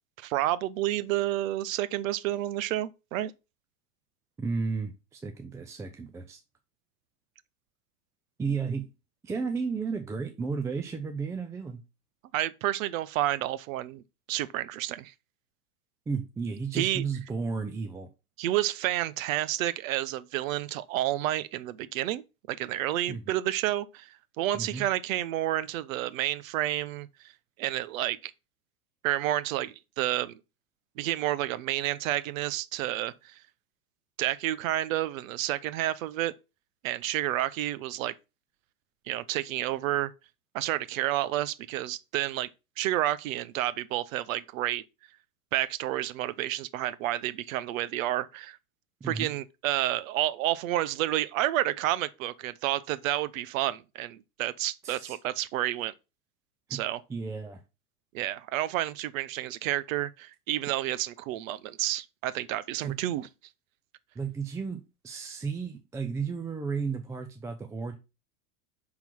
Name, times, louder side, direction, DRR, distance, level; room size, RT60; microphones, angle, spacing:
voice 1, 0.2-3.3 12.3-14.0 14.3-15.1 16.7-17.0 18.4-22.2 22.5-27.1 27.6-28.3 29.0-30.4 31.0-33.4 34.2-36.3 36.8-38.1 39.1-40.1 40.5-42.5 42.8-44.8 45.5-48.6 49.0-55.9 56.7-57.0 58.1-63.3, right 14 dB, 65° right, 0.8 m, -30 dB
voice 2, 4.4-6.4 8.4-8.9 9.2-11.8 16.1-18.1 23.1-23.3 24.5-24.8 49.0-49.3 54.8-55.2 56.7-56.8 57.1-57.6 62.8-62.9 64.2-67.9, right 5 dB, 5° right, 0.3 m, -33 dB
5.9 x 3.9 x 5.9 m
hypercardioid pair, 110°, 44 cm